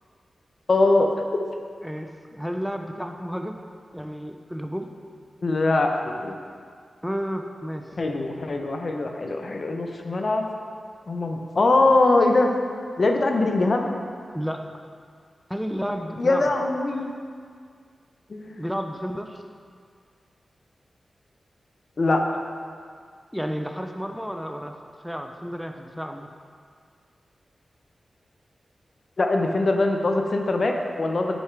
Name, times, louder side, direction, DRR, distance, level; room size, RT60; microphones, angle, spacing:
voice 1, 0.7-1.1 5.4-6.4 8.0-10.5 11.1-12.5 13.0-14.0 16.2-17.1 18.3-18.6 22.0-22.4 29.2-31.4, left 2 dB, 60° left, 3 dB, 0.7 m, -22 dB
voice 2, 1.8-3.6 3.9-4.9 7.0-8.0 14.3-14.8 15.5-16.5 18.6-19.4 23.3-24.8 25.0-26.3, equal, ahead, 4 dB, 0.6 m, -31 dB
10.0 x 4.4 x 3.4 m, 2.1 s
cardioid pair, 40°, 0 cm